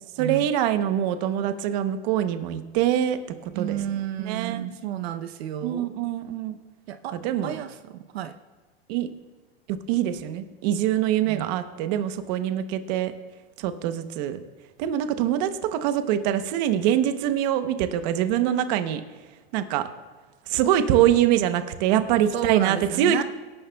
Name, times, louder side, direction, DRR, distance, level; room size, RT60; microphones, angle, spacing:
voice 1, 0.2-3.8 4.2-4.6 5.6-6.6 7.1-7.6 8.9-9.1 9.7-13.1 13.6-14.4 14.8-19.0 19.5-19.9 20.5-23.2, right 11 dB, 40° right, 9 dB, 0.9 m, -24 dB
voice 2, 3.5-5.9 6.9-7.2 7.4-8.3 11.3-11.5 22.3-23.2, right 10 dB, 70° right, 8 dB, 0.8 m, -31 dB
25.5 x 11.0 x 2.3 m, 1.4 s
supercardioid pair, 160°, 32 cm